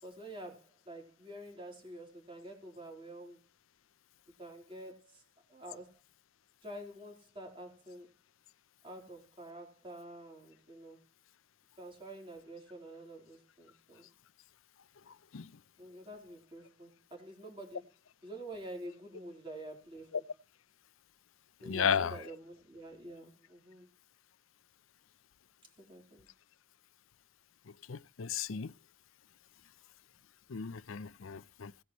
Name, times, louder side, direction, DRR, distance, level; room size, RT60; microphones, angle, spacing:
voice 1, 0.0-3.4 4.4-5.2 5.5-5.9 6.6-8.1 8.8-11.0 11.8-14.1 15.8-17.8 18.2-20.2 21.6-23.9 25.8-26.3, right 1 dB, 25° right, 3.8 m, -48 dB
voice 2, 21.7-22.2 27.9-28.7 30.5-31.7, left 7 dB, 90° left, 0.6 m, -34 dB
18.0 x 9.7 x 3.1 m
head